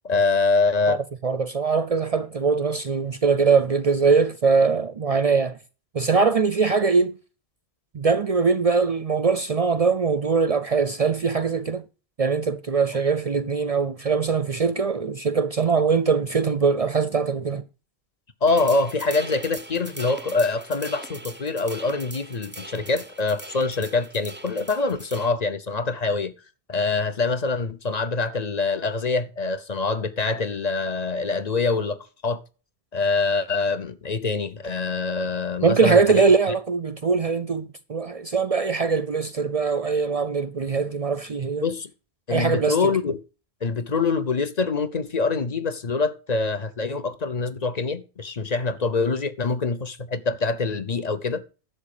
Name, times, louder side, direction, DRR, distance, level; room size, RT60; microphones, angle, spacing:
voice 1, 0.0-1.0 18.4-26.3 26.7-32.0 32.2-32.4 32.9-36.2 41.6-41.9 42.3-43.2 43.6-51.4, left 3 dB, 40° left, 0.9 m, -25 dB
voice 2, 1.2-5.6 5.9-7.2 7.9-11.8 12.2-17.6 35.6-41.7 42.3-42.9, right 5 dB, 45° right, 0.5 m, -22 dB
sound 1, 18.5-25.3, right 1 dB, 10° right, 0.8 m, -40 dB
11.0 x 7.4 x 4.9 m
omnidirectional pair, 1.1 m